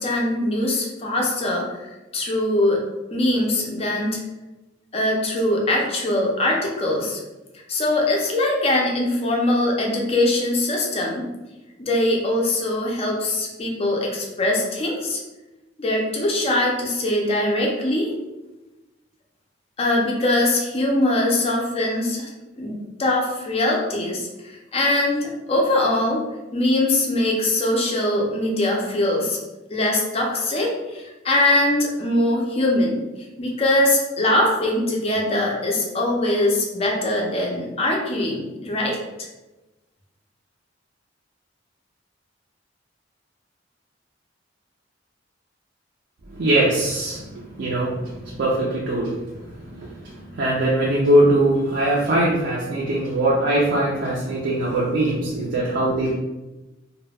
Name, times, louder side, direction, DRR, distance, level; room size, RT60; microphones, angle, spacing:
voice 1, 0.0-1.7 2.1-2.8 3.1-4.2 4.9-7.2 7.7-11.3 11.8-15.2 15.8-18.1 19.8-22.3 22.6-26.2 26.5-29.4 29.7-33.0 33.4-39.0, left 1 dB, 35° left, -1 dB, 0.5 m, -22 dB
voice 2, 46.3-56.2, right 1 dB, 65° right, -5 dB, 0.4 m, -22 dB
2.3 x 2.1 x 3.3 m, 1.1 s
head